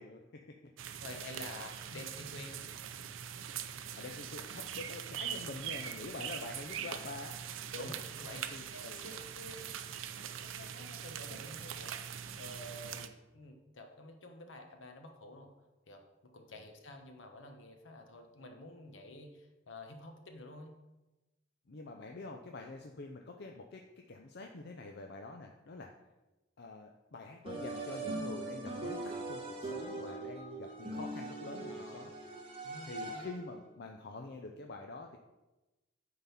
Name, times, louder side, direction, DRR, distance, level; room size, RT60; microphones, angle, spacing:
voice 1, 0.0-1.0 3.9-7.4 7.8-7.9 8.3-9.0 12.2-12.4 12.9-13.1 16.5-16.6 21.7-25.9 26.6-32.1 32.8-35.2, left 3 dB, 55° left, 3 dB, 0.5 m, -46 dB
sound 1, 0.8-13.1, right 9 dB, 90° right, 0.5 m, -42 dB
voice 2, 1.0-2.7 7.7-9.8 10.1-13.1 13.3-15.5 15.9-20.8 31.7-32.3 32.6-33.3, left 1 dB, 75° left, 4 dB, 1.1 m, -50 dB
sound 2, 27.5-33.5, right 2 dB, 30° right, 1.4 m, -41 dB
9.1 x 3.9 x 5.7 m, 1.1 s
head